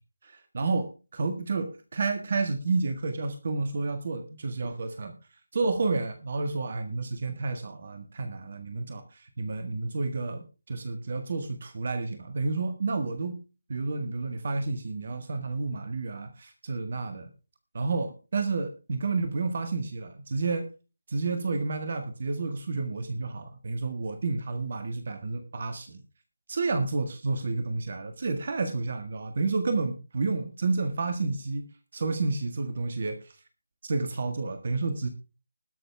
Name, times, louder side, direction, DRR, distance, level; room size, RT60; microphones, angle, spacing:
voice 1, 0.2-5.1 5.5-13.3 13.7-17.3 17.7-20.6 21.1-26.0 26.5-31.7 31.9-33.3 33.8-35.1, right 3 dB, 45° right, 7 dB, 1.6 m, -30 dB
20.0 x 6.8 x 3.5 m, 0.33 s
figure-of-eight pair, 160°, 0 cm